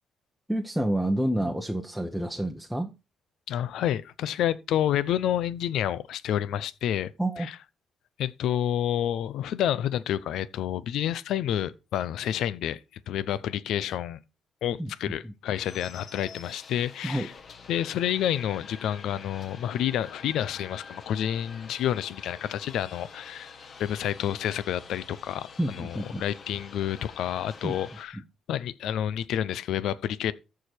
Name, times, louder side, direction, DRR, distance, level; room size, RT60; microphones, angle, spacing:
voice 1, 0.5-2.9 7.2-7.5 14.8-15.3 17.0-17.3 25.6-26.2 27.6-27.8 28.1-28.2, right 1 dB, ahead, 0.9 m, -29 dB
voice 2, 3.5-7.1 7.4-7.6 8.2-12.8 13.1-14.2 14.6-17.3 17.7-23.5 23.8-28.2 28.5-30.3, left 11 dB, 80° left, 0.6 m, -29 dB
sound 1, 15.5-28.1, left 5 dB, 50° left, 1.3 m, -47 dB
14.0 x 4.8 x 4.4 m
cardioid pair, 90°, 0 cm